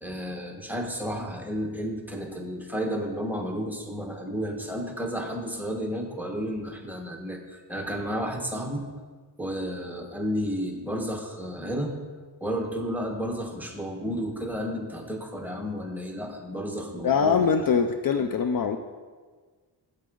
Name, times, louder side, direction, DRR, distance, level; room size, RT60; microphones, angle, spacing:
voice 1, 0.0-8.9 9.4-12.0 12.4-17.6, equal, 5° right, 2 dB, 1.2 m, -32 dB
voice 2, 17.0-18.8, left 6 dB, 50° left, 7 dB, 0.5 m, -23 dB
8.2 x 8.1 x 3.8 m, 1.5 s
cardioid pair, 70°, 45 cm